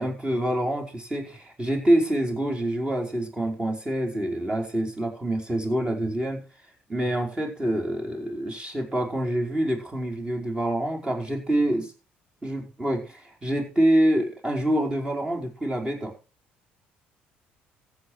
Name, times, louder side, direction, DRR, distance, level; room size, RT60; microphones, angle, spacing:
voice 1, 0.0-6.4 6.9-11.9 12.4-16.1, right 1 dB, 20° right, 1 dB, 4.9 m, -26 dB
14.5 x 8.6 x 4.8 m, 0.34 s
supercardioid pair, 70°, 5 cm